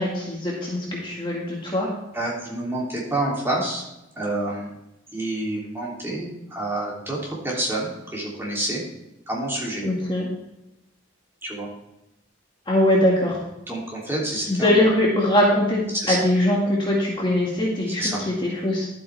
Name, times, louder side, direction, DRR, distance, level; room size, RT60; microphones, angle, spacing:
voice 1, 0.0-1.9 9.8-10.3 12.7-13.4 14.5-18.9, left 1 dB, 25° left, -4 dB, 1.9 m, -22 dB
voice 2, 2.1-3.8 4.2-4.7 5.1-8.8 9.3-9.8 11.4-11.7 13.7-14.8 15.9-16.3 18.0-18.2, right 1 dB, 10° right, -4 dB, 3.0 m, -28 dB
12.0 x 8.5 x 3.4 m, 0.90 s
head